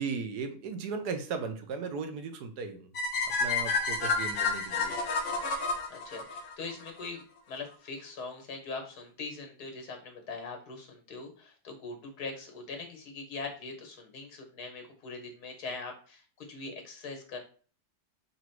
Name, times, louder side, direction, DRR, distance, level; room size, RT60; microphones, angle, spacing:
voice 1, 0.0-2.9 3.4-4.9, right 5 dB, 80° right, 7 dB, 1.3 m, -36 dB
sound 1, 2.9-7.1, left 3 dB, 55° left, 1.0 m, -30 dB
voice 2, 5.9-17.4, left 3 dB, 75° left, 4 dB, 1.6 m, -42 dB
4.0 x 2.7 x 4.4 m, 0.40 s
omnidirectional pair, 1.7 m